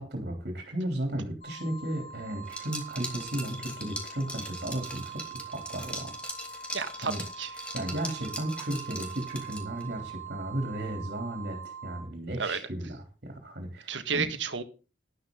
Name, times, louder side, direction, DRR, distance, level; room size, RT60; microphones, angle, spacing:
voice 1, 0.0-5.2 5.5-6.2 6.5-6.8 7.0-7.2 7.7-14.3, right 1 dB, 55° right, 3.3 m, -35 dB
sound 1, 1.4-12.0, right 6 dB, 45° left, 5.6 m, -43 dB
Liquid, 2.5-9.9, equal, 5° left, 2.6 m, -40 dB
voice 2, 6.7-7.5 12.4-12.6 13.9-14.6, right 5 dB, 80° right, 1.6 m, -31 dB
12.5 x 11.5 x 3.9 m
head